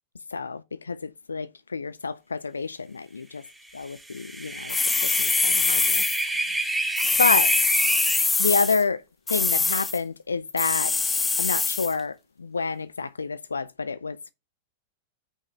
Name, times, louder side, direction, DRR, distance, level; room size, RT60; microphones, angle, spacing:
voice 1, 0.3-3.4 3.8-4.8 5.0-6.0 7.2-7.5 8.4-9.0 9.3-14.2, left 4 dB, 75° left, 0.4 m, -28 dB
sound 1, 4.0-8.3, right 2 dB, 5° right, 1.2 m, -28 dB
sound 2, 4.7-6.2 7.0-8.8 9.3-10.0 10.6-11.9, left 4 dB, 10° left, 0.4 m, -24 dB
6.3 x 5.3 x 6.9 m
figure-of-eight pair, 95°, 0 cm